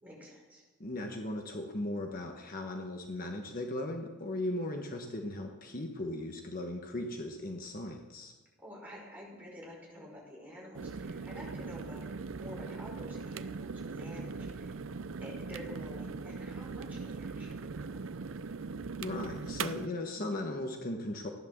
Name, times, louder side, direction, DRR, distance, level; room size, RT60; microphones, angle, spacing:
voice 1, 0.0-0.6 8.6-14.7 15.2-18.2, equal, 10° right, -4 dB, 5.3 m, -49 dB
voice 2, 0.8-8.3 19.0-21.3, left 1 dB, 40° left, 3 dB, 1.2 m, -37 dB
sound 1, 10.7-19.9, right 4 dB, 65° right, 0.6 m, -40 dB
15.5 x 10.5 x 7.3 m, 1.2 s
head